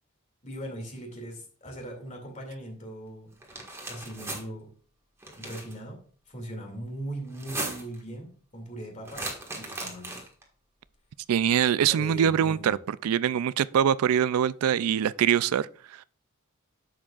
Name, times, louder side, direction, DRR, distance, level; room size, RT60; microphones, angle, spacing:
voice 1, 0.4-3.4 3.9-4.7 5.4-6.0 6.3-9.3 9.6-10.3 11.9-12.8, right 1 dB, 35° left, 2.5 m, -40 dB
sound 1, 3.4-4.4 5.2-5.7 7.3-8.0 9.1-10.4, right 2 dB, 10° right, 1.6 m, -37 dB
voice 2, 11.3-12.8 13.0-16.0, right 9 dB, 85° right, 0.3 m, -24 dB
10.5 x 7.3 x 2.4 m
head